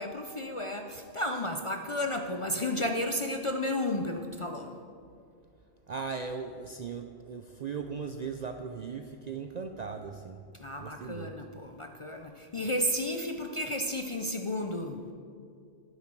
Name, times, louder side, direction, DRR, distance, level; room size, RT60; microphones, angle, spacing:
voice 1, 0.0-4.7 10.6-15.0, left 1 dB, 40° left, 4 dB, 0.4 m, -32 dB
voice 2, 5.9-10.4 10.8-11.3, right 5 dB, 55° right, 6 dB, 0.4 m, -38 dB
11.5 x 9.5 x 4.5 m, 2.3 s
omnidirectional pair, 1.2 m